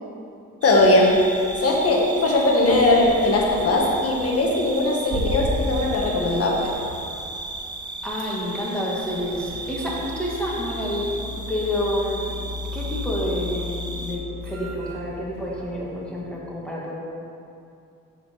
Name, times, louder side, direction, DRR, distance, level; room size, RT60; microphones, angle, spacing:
voice 1, 0.6-1.2 1.6-6.7, left 2 dB, 50° left, -1 dB, 1.3 m, -19 dB
sound 1, 0.6-14.1, right 2 dB, 15° right, 0.8 m, -36 dB
sound 2, 0.7-16.2, left 1 dB, 80° right, 1.5 m, -35 dB
voice 2, 8.0-12.3 12.7-16.9, left 1 dB, 5° left, -6 dB, 1.7 m, -29 dB
6.7 x 4.4 x 6.7 m, 2.5 s
cardioid pair, 90°, 30 cm